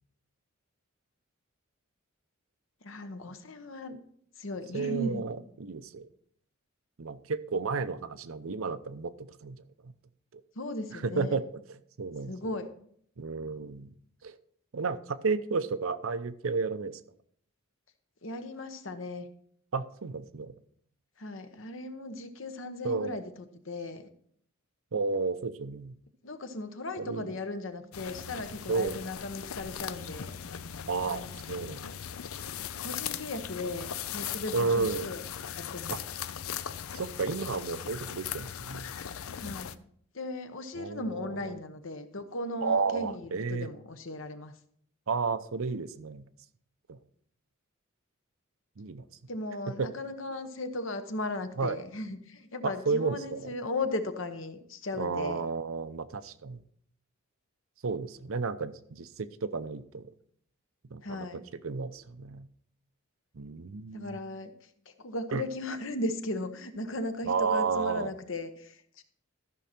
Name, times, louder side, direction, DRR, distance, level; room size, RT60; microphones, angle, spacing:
voice 1, 2.8-4.0 4.4-5.2 10.6-11.4 12.3-12.7 18.2-19.3 21.2-23.3 23.6-24.0 26.2-30.3 31.0-31.3 32.8-35.3 35.5-35.9 39.4-39.7 40.1-44.5 49.3-55.4 61.0-61.4 63.9-64.5 65.0-69.0, left 2 dB, 60° left, 8 dB, 1.0 m, -37 dB
voice 2, 4.7-6.1 7.0-9.9 10.3-10.4 10.9-12.6 13.2-13.9 14.2-14.4 14.7-17.0 19.7-20.5 22.8-23.2 24.9-26.0 27.0-27.4 28.7-29.0 30.9-32.0 34.5-35.1 35.9-36.0 36.9-38.9 40.8-41.5 42.6-43.7 45.1-46.2 46.9-47.0 48.8-49.1 49.7-49.9 51.6-51.8 52.6-53.5 55.0-56.6 57.8-60.1 60.9-62.5 63.3-64.2 65.3-65.4 67.2-68.1, right 4 dB, 75° right, 13 dB, 0.7 m, -32 dB
sound 1, 27.9-39.7, left 9 dB, 85° left, 0.5 m, -39 dB
14.0 x 6.2 x 4.4 m, 0.64 s
head